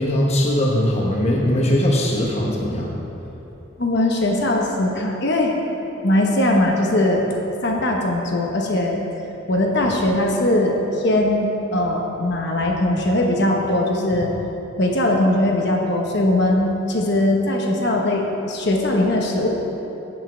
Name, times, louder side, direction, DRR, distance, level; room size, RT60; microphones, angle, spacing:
voice 1, 0.0-3.0, left 1 dB, 30° left, -2 dB, 0.9 m, -20 dB
voice 2, 3.8-5.5 6.0-7.3 7.6-8.9 9.5-14.3 14.8-19.5, left 1 dB, 55° left, 0 dB, 1.1 m, -20 dB
8.2 x 7.6 x 6.1 m, 3.0 s
head